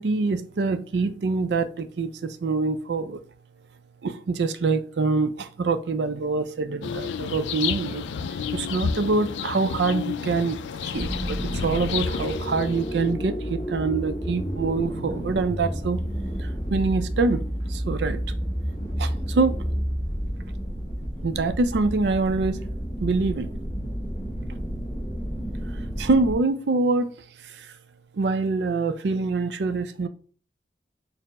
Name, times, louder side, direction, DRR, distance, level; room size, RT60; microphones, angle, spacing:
voice 1, 0.0-3.2 4.0-8.0 8.5-16.0 16.4-17.4 17.7-18.2 19.0-19.6 21.2-22.6 23.0-23.5 26.0-27.1 27.4-27.7 28.1-30.1, right 3 dB, 70° right, 0.4 m, -25 dB
sound 1, 6.8-13.1, left 6 dB, 90° left, 0.3 m, -31 dB
sound 2, 10.9-26.3, equal, 20° left, 0.8 m, -30 dB
4.2 x 2.0 x 4.0 m
head